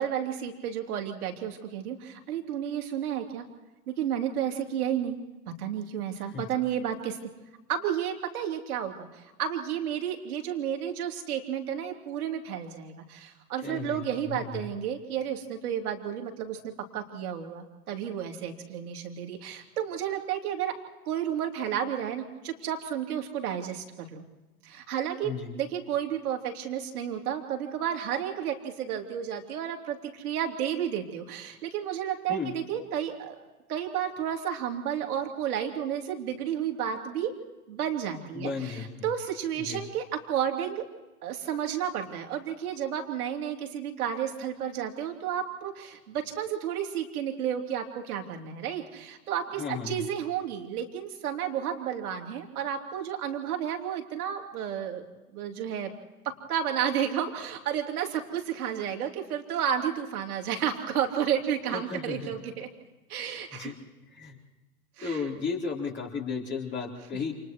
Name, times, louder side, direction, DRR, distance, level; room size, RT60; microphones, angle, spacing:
voice 1, 0.0-3.4 3.9-5.2 5.6-7.2 7.7-20.8 21.0-24.2 24.6-33.4 33.7-37.3 37.7-40.9 41.2-55.0 55.3-55.9 56.2-62.7 63.1-63.7 65.0-65.2, right 9 dB, 65° right, 3 dB, 3.3 m, -32 dB
voice 2, 13.6-14.6 25.2-25.5 32.3-32.5 38.3-39.1 39.6-39.8 49.6-50.0 61.7-62.3 63.5-63.7 64.1-64.4 65.0-67.3, left 5 dB, 20° left, -1 dB, 3.9 m, -34 dB
29.0 x 28.5 x 3.1 m, 1.1 s
figure-of-eight pair, 95°, 47 cm